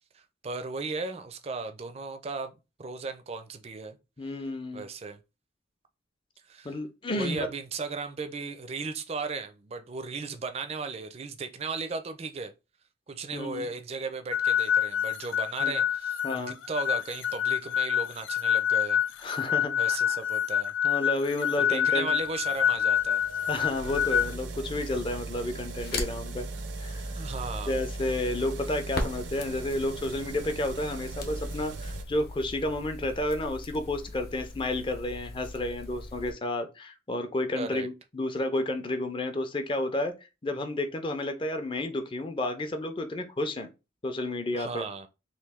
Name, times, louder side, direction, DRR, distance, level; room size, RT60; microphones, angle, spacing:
voice 1, 0.1-2.5 2.8-4.0 4.7-5.2 6.5-6.7 7.2-12.5 13.1-19.0 19.8-20.7 21.6-23.2 27.1-27.8 37.5-37.9 44.5-45.1, right 4 dB, 35° right, 0.4 m, -36 dB
voice 2, 4.2-4.8 6.6-7.5 13.3-13.7 15.6-15.7 16.2-16.6 19.2-20.2 20.8-22.1 23.5-26.5 26.8-27.3 27.7-40.1 40.4-43.7 44.0-44.8, left 1 dB, 25° left, 0.5 m, -31 dB
sound 1, 14.3-24.3, left 9 dB, 90° left, 0.4 m, -27 dB
sound 2, 21.7-32.0, right 3 dB, 85° right, 0.5 m, -39 dB
Crackle, 25.3-36.3, left 2 dB, 55° left, 0.8 m, -39 dB
3.1 x 2.6 x 3.5 m
head